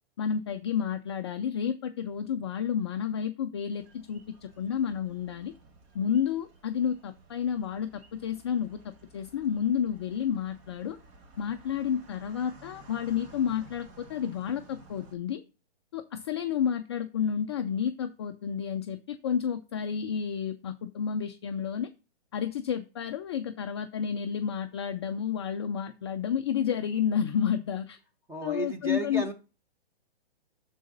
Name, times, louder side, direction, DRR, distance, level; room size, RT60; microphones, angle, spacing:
voice 1, 0.2-5.5 5.9-11.0 11.4-15.4 15.9-21.9 22.3-28.0 28.4-29.2, left 8 dB, 25° left, 6 dB, 0.4 m, -30 dB
sound 1, 3.7-15.1, right 2 dB, 35° right, 1.5 m, -54 dB
voice 2, 28.3-29.3, right 1 dB, 10° right, 4 dB, 1.1 m, -33 dB
11.5 x 4.0 x 3.9 m, 0.32 s
hypercardioid pair, 145°, 31 cm